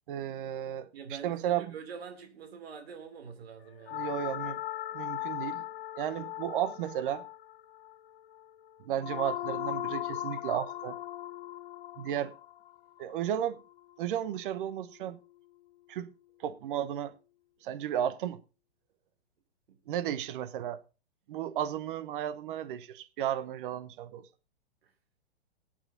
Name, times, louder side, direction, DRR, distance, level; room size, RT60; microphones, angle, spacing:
voice 1, 0.1-1.8 3.9-4.6 4.9-5.7 6.0-7.2 8.8-11.0 12.0-12.3 13.0-13.6 14.0-15.2 15.9-16.1 16.4-17.1 17.6-18.4 19.9-20.8 21.3-24.3, right 10 dB, 50° right, 1.0 m, -34 dB
voice 2, 0.9-4.1 19.7-20.2 24.8-24.9, right 6 dB, 70° right, 2.7 m, -46 dB
sound 1, 3.9-14.1, left 14 dB, 60° left, 0.6 m, -38 dB
22.0 x 8.9 x 2.7 m
hypercardioid pair, 110°, 32 cm